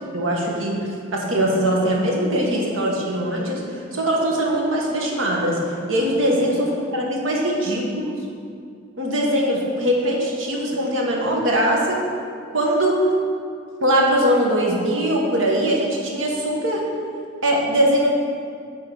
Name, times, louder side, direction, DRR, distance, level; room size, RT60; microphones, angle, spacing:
voice 1, 0.1-8.1 9.0-12.0 12.5-13.0 13.8-16.8 17.4-18.1, right 1 dB, 85° right, -2 dB, 1.3 m, -21 dB
9.1 x 3.8 x 5.5 m, 2.3 s
head